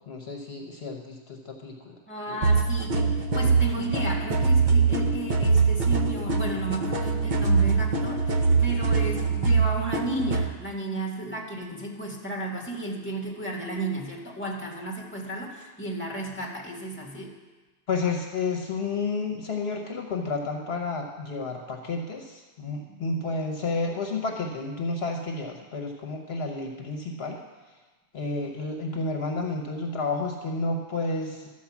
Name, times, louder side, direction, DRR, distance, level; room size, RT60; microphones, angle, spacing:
voice 1, 0.1-2.0 2.3-2.4 17.9-27.4 27.7-27.8 28.1-31.5, left 3 dB, 65° left, 2 dB, 1.1 m, -31 dB
voice 2, 2.1-17.4 22.9-23.0, right 2 dB, 10° left, -2 dB, 1.6 m, -34 dB
sound 1, 2.4-10.5, right 4 dB, 45° right, 0.8 m, -23 dB
12.5 x 4.7 x 7.1 m, 1.3 s
omnidirectional pair, 1.2 m